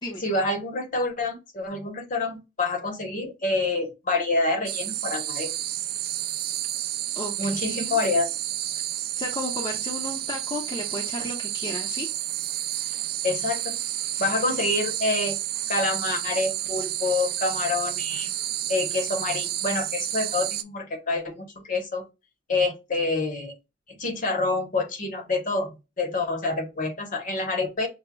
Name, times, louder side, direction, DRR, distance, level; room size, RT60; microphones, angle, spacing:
voice 1, 0.2-5.5 7.4-8.3 13.2-13.8 14.2-15.4 15.7-18.3 18.7-22.0 22.5-23.5 23.9-27.9, left 3 dB, 45° left, 0.9 m, -27 dB
sound 1, 4.7-20.6, right 12 dB, 50° right, 0.4 m, -30 dB
voice 2, 7.2-8.0 9.2-12.1, left 1 dB, 25° left, 0.6 m, -34 dB
6.0 x 2.1 x 2.2 m
head